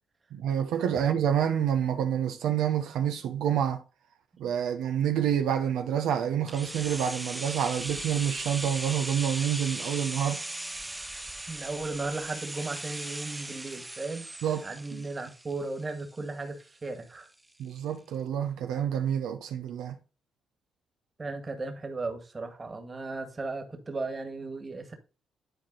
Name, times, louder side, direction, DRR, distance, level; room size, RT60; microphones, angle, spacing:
voice 1, 0.3-3.8 4.4-10.4 14.4-14.6 14.9-15.0 17.6-20.0, right 9 dB, 85° right, 0.9 m, -28 dB
sound 1, 6.5-16.3 16.6-16.7, right 1 dB, 10° right, 0.4 m, -38 dB
voice 2, 11.5-14.3 14.6-17.3 21.2-24.9, right 3 dB, 30° right, 1.9 m, -36 dB
11.0 x 4.4 x 4.0 m
cardioid pair, 90°, 0 cm